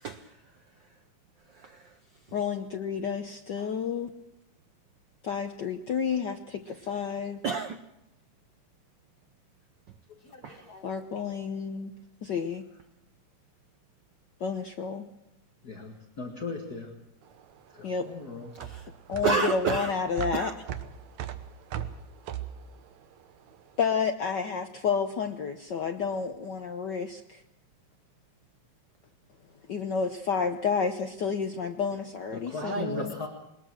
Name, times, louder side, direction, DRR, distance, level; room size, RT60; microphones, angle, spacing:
voice 1, 0.0-0.4 1.5-1.9 7.4-7.8 10.4-10.7 18.6-18.9 19.2-19.9 20.3-20.5 32.6-33.3, right 5 dB, 90° right, 8 dB, 1.0 m, -31 dB
voice 2, 2.3-4.1 5.2-7.4 10.8-11.9 12.2-12.6 14.4-15.1 17.8-18.1 19.1-20.5 23.8-27.4 29.7-33.1, left 6 dB, 85° left, 6 dB, 0.9 m, -30 dB
voice 3, 15.7-16.9 18.1-18.4 32.5-33.3, left 4 dB, 35° left, 3 dB, 2.1 m, -37 dB
sound 1, 17.2-23.8, right 10 dB, 75° right, 2.4 m, -38 dB
21.5 x 20.5 x 6.3 m, 0.87 s
omnidirectional pair, 3.3 m